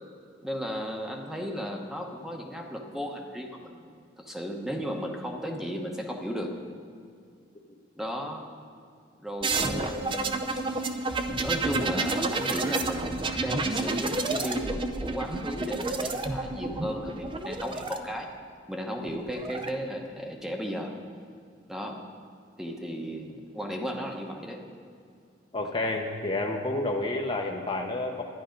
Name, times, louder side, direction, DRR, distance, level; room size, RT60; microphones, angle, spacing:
voice 1, 0.4-6.6 8.0-8.5 9.2-10.5 11.3-18.3 18.7-20.9 21.7-22.0 22.6-24.6, equal, 5° right, 1 dB, 0.9 m, -35 dB
sound 1, 9.4-18.0 19.1-19.7, right 3 dB, 25° right, 0.6 m, -30 dB
voice 2, 22.6-23.1 25.5-28.2, left 2 dB, 25° left, 2 dB, 0.8 m, -30 dB
11.5 x 10.5 x 5.2 m, 2.3 s
head